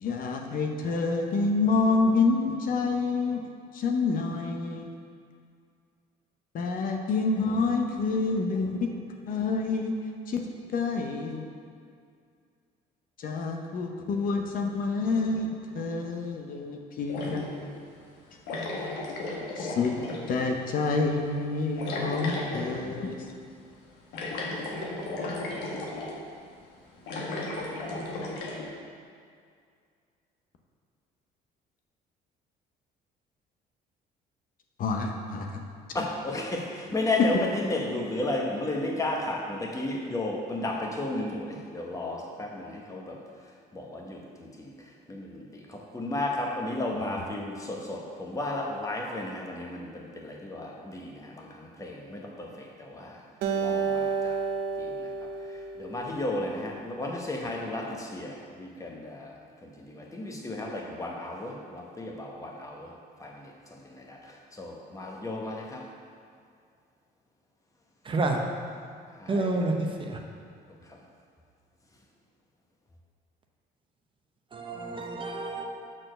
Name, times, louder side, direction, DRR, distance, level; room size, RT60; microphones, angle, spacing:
voice 1, 0.0-3.4 3.7-4.9 6.5-8.9 9.3-9.9 10.3-10.4 10.7-11.4 13.2-17.4 19.6-19.9 20.3-23.3 34.8-35.6 37.2-37.3 47.0-47.1, left 4 dB, 55° left, 0.8 m, -27 dB
sound 1, 17.1-17.7 18.5-20.4 21.8-22.8 24.1-26.2 27.0-28.6, left 2 dB, 85° left, 1.2 m, -34 dB
voice 2, 35.9-37.4 37.7-43.2 43.7-44.5 45.1-45.4 45.7-52.5 52.8-53.1 53.5-54.3 54.8-54.9 55.8-59.3 59.9-62.9 63.2-63.3 64.1-64.2 64.6-65.8 69.2-69.5, left 2 dB, 20° left, 1.1 m, -33 dB
Acoustic guitar, 53.4-56.8, right 5 dB, 75° right, 0.6 m, -31 dB
voice 3, 68.1-68.4 69.3-69.7 70.1-70.2 74.5-75.7, right 2 dB, 30° right, 0.8 m, -29 dB
6.2 x 4.4 x 6.6 m
cardioid pair, 110°, 17 cm